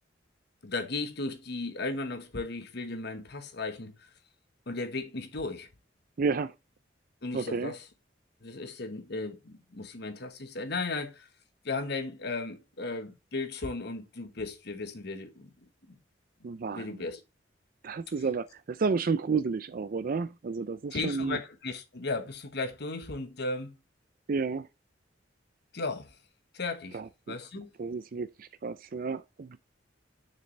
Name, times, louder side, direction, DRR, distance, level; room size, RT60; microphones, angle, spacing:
voice 1, 0.6-4.1 4.7-5.7 7.2-7.8 8.4-11.3 11.6-15.5 15.9-16.0 16.7-17.2 20.9-23.7 25.7-26.2 26.5-27.0 27.3-27.7, left 3 dB, 60° left, 1.3 m, -35 dB
voice 2, 6.2-6.5 7.3-7.7 16.4-17.1 17.8-21.4 24.3-24.7 26.9-27.4 27.8-29.6, right 4 dB, 50° right, 0.4 m, -31 dB
6.7 x 6.6 x 3.2 m
head